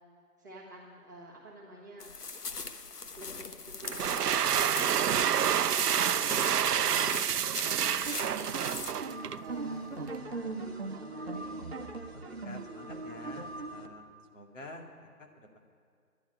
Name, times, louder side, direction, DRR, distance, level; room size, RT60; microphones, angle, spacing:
voice 1, 0.4-2.1 3.1-8.8 9.4-10.5 10.9-11.8, right 1 dB, 10° right, -9 dB, 1.3 m, -49 dB
sound 1, 2.0-8.9, left 4 dB, 80° left, 1.2 m, -42 dB
sound 2, 3.8-9.4, right 9 dB, 80° right, 0.6 m, -28 dB
voice 2, 4.7-5.2 9.7-10.1 12.1-15.6, left 2 dB, 55° left, 1 dB, 2.2 m, -50 dB
sound 3, 7.8-13.9, right 3 dB, 40° right, 1.0 m, -40 dB
11.0 x 8.8 x 10.0 m, 2.1 s
figure-of-eight pair, 170°, 46 cm